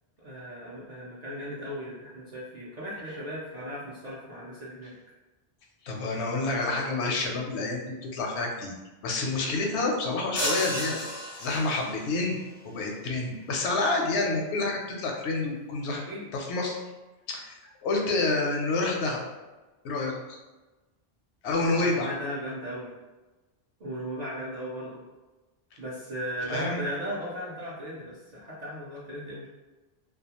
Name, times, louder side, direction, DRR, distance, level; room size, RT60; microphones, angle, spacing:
voice 1, 0.2-4.9 15.9-16.3 21.8-22.9 23.8-25.0 25.8-29.5, equal, 50° right, -7 dB, 0.5 m, -36 dB
voice 2, 5.8-8.8 9.0-11.0 11.4-12.4 12.6-16.0 16.3-16.8 17.3-19.2 19.8-20.4 21.4-22.1 26.5-26.8, left 3 dB, 85° left, 1 dB, 0.9 m, -28 dB
sound 1, 10.4-12.2, equal, 20° left, 0.4 m, -32 dB
2.4 x 2.3 x 2.8 m, 1.2 s
omnidirectional pair, 1.1 m